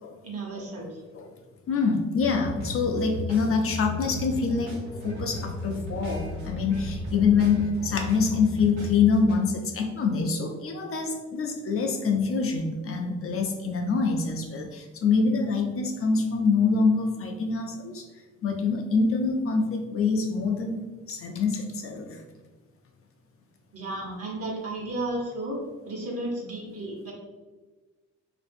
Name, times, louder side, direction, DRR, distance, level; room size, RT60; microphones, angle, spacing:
voice 1, 0.2-1.0 23.7-25.6 25.9-27.1, right 2 dB, 50° right, -2 dB, 1.0 m, -33 dB
voice 2, 1.7-18.0 18.4-22.2, left 4 dB, 45° left, 3 dB, 0.5 m, -25 dB
sound 1, 2.2-9.3, left 2 dB, 80° right, 1.1 m, -35 dB
2.9 x 2.6 x 2.6 m, 1.3 s
cardioid pair, 90°, 30 cm